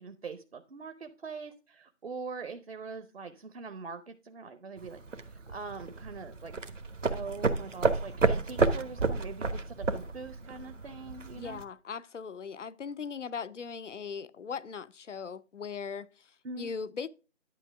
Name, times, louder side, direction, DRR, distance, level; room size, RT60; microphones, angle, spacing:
voice 1, 0.0-6.5 7.1-11.6 16.4-16.7, right 4 dB, 55° right, 0.8 m, -43 dB
sound 1, 4.8-11.6, right 3 dB, 80° right, 1.2 m, -31 dB
voice 2, 11.4-16.3 16.6-17.1, left 6 dB, 75° left, 0.6 m, -39 dB
10.5 x 5.3 x 3.4 m
figure-of-eight pair, 160°, 37 cm